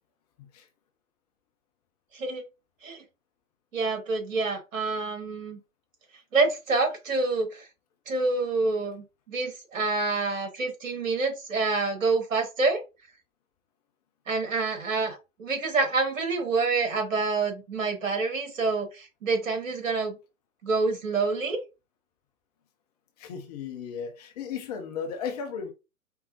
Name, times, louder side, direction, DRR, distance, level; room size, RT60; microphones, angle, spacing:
voice 1, 3.7-5.6 6.3-7.7 8.1-12.8 14.3-20.2 20.6-21.6, right 3 dB, 65° right, 2.0 m, -27 dB
voice 2, 23.2-25.7, left 6 dB, 30° left, 0.7 m, -35 dB
4.5 x 3.5 x 2.9 m
figure-of-eight pair, 125°, 42 cm